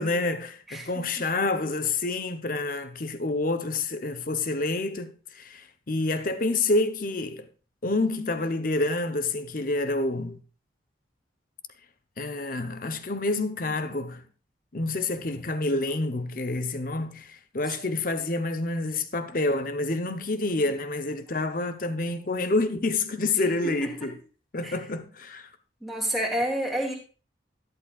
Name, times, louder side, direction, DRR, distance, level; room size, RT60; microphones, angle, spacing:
voice 1, 0.0-7.5 7.8-10.4 12.2-14.2 14.7-24.2 24.5-25.5, left 2 dB, 45° left, 0.8 m, -28 dB
voice 2, 23.6-24.1 24.6-24.8 25.8-26.9, right 1 dB, ahead, 2.4 m, -30 dB
12.0 x 11.0 x 2.4 m
head